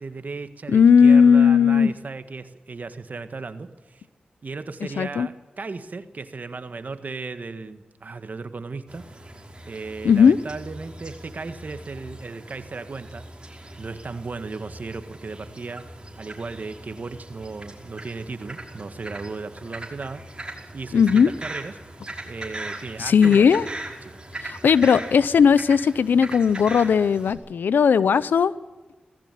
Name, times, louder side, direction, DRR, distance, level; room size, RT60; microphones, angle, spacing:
voice 1, 0.0-4.1 4.4-9.2 9.7-13.3 13.8-23.7 24.0-24.2 24.5-24.6, right 4 dB, 60° right, 10 dB, 1.8 m, -36 dB
voice 2, 0.7-1.9 5.0-5.3 10.0-10.4 20.9-21.3 23.0-23.7 24.4-28.5, left 6 dB, 85° left, 18 dB, 0.7 m, -17 dB
sound 1, 8.9-27.3, right 1 dB, 30° right, 5.5 m, -40 dB
18.5 x 15.5 x 9.2 m, 1.2 s
cardioid pair, 40°, 3 cm